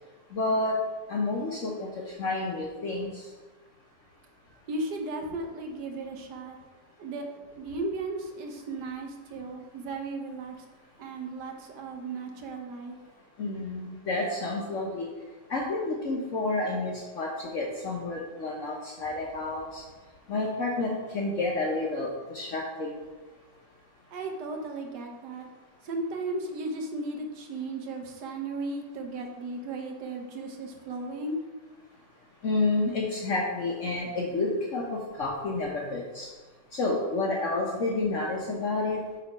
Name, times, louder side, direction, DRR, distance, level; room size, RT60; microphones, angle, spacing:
voice 1, 0.3-0.7 1.1-3.3 13.4-15.1 15.5-19.8 20.3-23.0 32.4-36.3 36.7-39.0, left 2 dB, 55° left, -2 dB, 1.1 m, -30 dB
voice 2, 4.7-6.6 7.0-10.5 11.0-12.9 24.1-25.5 25.8-31.4, right 2 dB, 75° right, 3 dB, 1.5 m, -35 dB
8.0 x 3.5 x 5.3 m, 1.2 s
omnidirectional pair, 1.9 m